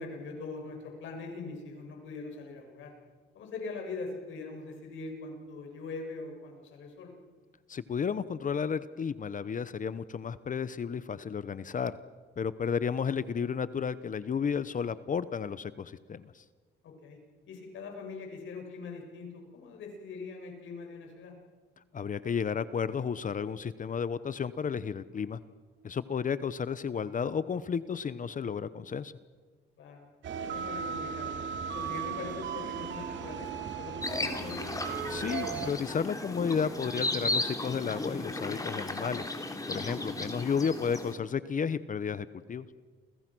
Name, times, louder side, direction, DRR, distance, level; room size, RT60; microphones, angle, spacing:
voice 1, 0.0-2.9 3.3-7.1 12.9-13.0 16.8-17.2 17.5-21.3 26.2-26.3 29.8-30.1 30.4-31.4 31.7-34.8, left 3 dB, 75° left, 2 dB, 7.4 m, -42 dB
voice 2, 7.7-11.9 12.4-16.4 21.9-25.4 25.8-29.1 35.1-39.4 39.7-42.7, left 6 dB, 40° left, 15 dB, 1.0 m, -32 dB
sound 1, 30.2-35.7, right 7 dB, 70° right, 2.8 m, -37 dB
sound 2, 34.0-41.1, left 2 dB, 15° left, 3.5 m, -35 dB
29.5 x 23.5 x 6.3 m, 1.4 s
cardioid pair, 90°, 20 cm